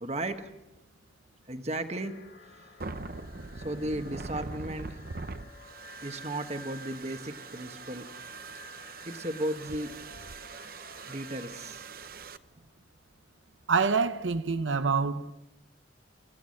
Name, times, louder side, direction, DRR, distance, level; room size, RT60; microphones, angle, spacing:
voice 1, 0.0-0.5 1.5-2.2 2.5-2.6 3.5-5.0 6.0-8.1 8.8-9.9 11.1-11.9, right 1 dB, 35° right, 1.4 m, -35 dB
sound 1, 2.0-11.7, left 4 dB, 60° left, 3.4 m, -54 dB
sound 2, 2.8-12.4, right 3 dB, 50° right, 0.8 m, -42 dB
voice 2, 13.7-15.3, right 5 dB, 90° right, 0.8 m, -26 dB
28.5 x 15.5 x 6.5 m
head